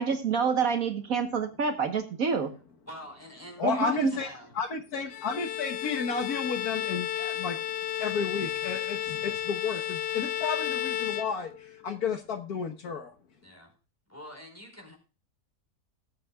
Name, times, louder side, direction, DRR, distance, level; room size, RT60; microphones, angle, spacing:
voice 1, 0.0-2.5 3.6-4.1, right 5 dB, 60° right, 7 dB, 1.5 m, -27 dB
voice 2, 2.9-4.5 13.4-13.7 14.1-15.0, equal, 10° left, 3 dB, 4.5 m, -46 dB
voice 3, 3.6-4.3 4.5-7.6 8.0-13.1, left 6 dB, 65° left, 6 dB, 1.6 m, -32 dB
Bowed string instrument, 5.1-11.9, left 11 dB, 85° left, 1.2 m, -33 dB
19.5 x 8.4 x 2.3 m, 0.34 s
omnidirectional pair, 1.8 m